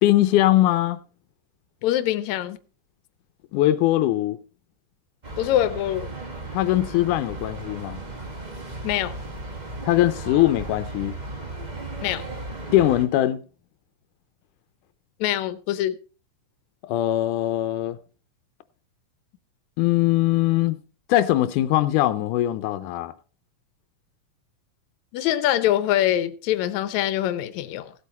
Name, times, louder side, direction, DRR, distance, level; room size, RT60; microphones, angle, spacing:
voice 1, 0.0-1.0 3.5-4.4 6.5-8.0 9.8-11.2 12.7-13.4 16.9-18.0 19.8-20.8 21.1-23.1, left 14 dB, 90° left, 2.2 m, -21 dB
voice 2, 1.8-2.6 5.4-6.1 8.8-9.1 12.0-12.2 15.2-16.0 25.1-27.9, left 12 dB, 75° left, 2.0 m, -24 dB
sound 1, 5.2-13.0, right 2 dB, 30° right, 0.7 m, -36 dB
16.0 x 8.3 x 4.2 m
omnidirectional pair, 3.5 m